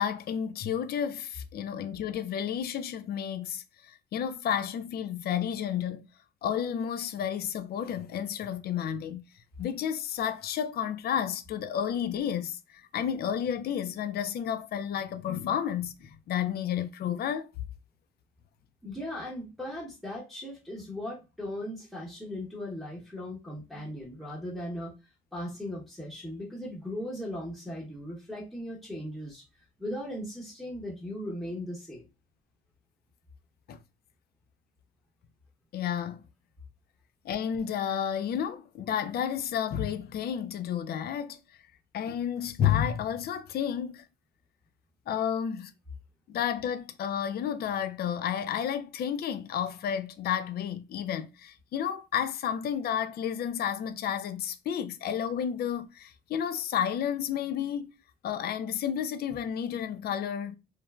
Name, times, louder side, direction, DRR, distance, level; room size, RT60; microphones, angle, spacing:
voice 1, 0.0-6.1 6.4-9.2 9.6-17.5 23.7-23.9 33.7-33.8 35.7-36.2 37.2-41.4 41.9-44.1 45.1-45.7 46.3-57.9 58.2-60.6, left 9 dB, 50° left, 0.4 m, -31 dB
voice 2, 18.8-24.9 25.3-29.4 29.8-32.1, left 1 dB, ahead, 0.9 m, -38 dB
3.1 x 2.1 x 2.3 m
cardioid pair, 90°, 20 cm